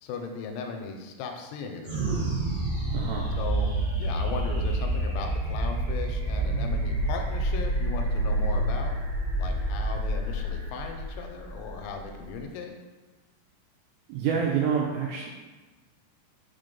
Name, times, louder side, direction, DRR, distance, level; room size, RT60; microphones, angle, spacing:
voice 1, 0.0-2.4 3.4-3.7 4.0-8.9 9.4-12.7, left 5 dB, 85° left, 4 dB, 2.8 m, -37 dB
sound 1, 1.8-12.5, right 1 dB, 40° right, 1.6 m, -28 dB
voice 2, 2.9-3.3 14.1-15.3, right 7 dB, 85° right, -2 dB, 2.2 m, -27 dB
5.8 x 3.9 x 5.3 m, 1.3 s
omnidirectional pair, 5.0 m